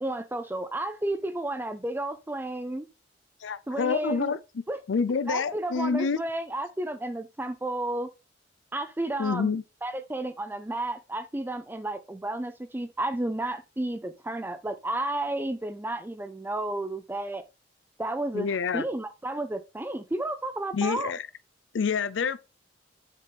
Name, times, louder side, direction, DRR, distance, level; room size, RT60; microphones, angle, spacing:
voice 1, 0.0-2.9 3.7-4.3 4.7-4.8 5.3-8.1 8.7-17.4 18.0-18.5 18.7-21.1, right 1 dB, 10° right, 0.5 m, -32 dB
voice 2, 3.4-4.4 4.9-6.2 9.2-9.6 18.3-18.9 20.7-21.3 21.7-22.4, left 5 dB, 85° left, 0.5 m, -27 dB
7.5 x 4.6 x 3.4 m
head